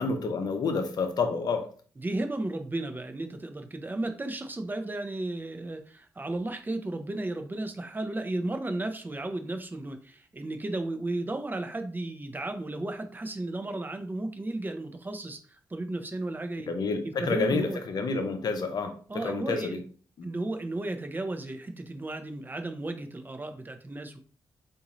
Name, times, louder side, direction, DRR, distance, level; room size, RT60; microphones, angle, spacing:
voice 1, 0.0-1.7 16.7-19.8, left 4 dB, 60° left, 0.7 m, -29 dB
voice 2, 2.0-16.7 17.0-17.8 19.1-19.8 20.2-24.2, right 2 dB, 25° right, 0.6 m, -34 dB
3.7 x 2.6 x 3.0 m
supercardioid pair, 45°, 8 cm